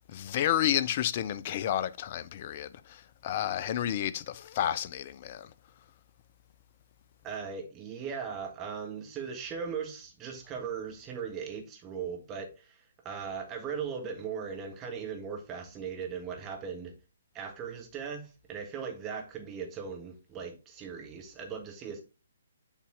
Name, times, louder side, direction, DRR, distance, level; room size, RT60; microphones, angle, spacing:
voice 1, 0.1-5.5, left 11 dB, 35° left, 0.5 m, -31 dB
voice 2, 7.2-16.9 17.3-22.0, right 6 dB, 20° right, 1.5 m, -38 dB
7.3 x 4.1 x 3.7 m
figure-of-eight pair, 130°, 0 cm